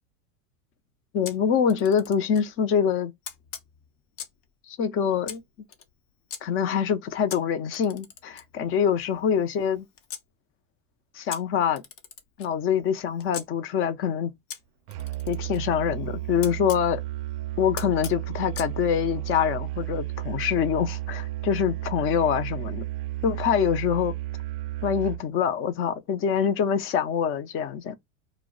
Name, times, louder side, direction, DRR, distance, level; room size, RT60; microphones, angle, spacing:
voice 1, 1.1-3.1 4.7-5.4 6.4-9.9 11.1-11.8 12.4-14.3 15.3-17.0 17.6-22.8 23.2-24.1 24.8-28.0, left 8 dB, 30° left, 0.5 m, -25 dB
Camera, 1.2-2.5 3.2-4.5 5.2-6.4 7.3-10.3 11.3-13.5 14.5-16.9 17.8-18.7, left 8 dB, 65° left, 0.8 m, -42 dB
Musical instrument, 14.9-25.3, right 16 dB, 50° right, 0.4 m, -33 dB
2.2 x 2.1 x 3.7 m
hypercardioid pair, 105°, 41 cm